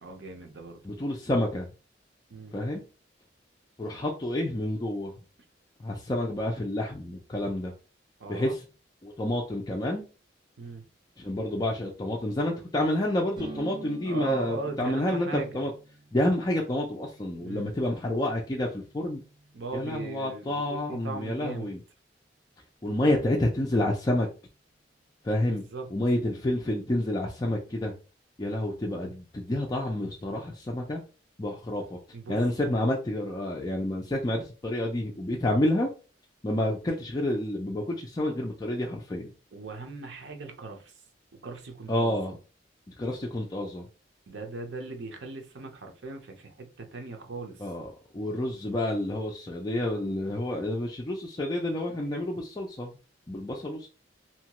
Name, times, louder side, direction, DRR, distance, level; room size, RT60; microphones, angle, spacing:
voice 1, 0.0-1.0 2.3-2.6 8.2-8.6 10.6-10.9 14.1-15.6 17.4-17.7 19.5-21.7 22.8-23.3 25.5-25.9 29.0-29.1 32.1-32.4 39.5-41.0 41.3-42.3 44.3-47.6, right 4 dB, 75° right, 0.7 m, -39 dB
voice 2, 0.8-1.7 2.5-2.8 3.8-5.1 5.8-7.7 8.3-8.6 9.0-10.1 11.2-15.7 16.1-19.2 19.7-21.8 22.8-24.3 25.2-25.6 25.9-27.9 28.4-31.0 31.4-32.0 32.3-35.9 36.4-39.3 41.9-42.4 43.0-43.9 47.6-53.0 53.3-53.9, left 1 dB, 20° left, 0.4 m, -29 dB
sound 1, 13.3-21.0, right 2 dB, 25° right, 0.6 m, -48 dB
2.8 x 2.3 x 2.9 m
head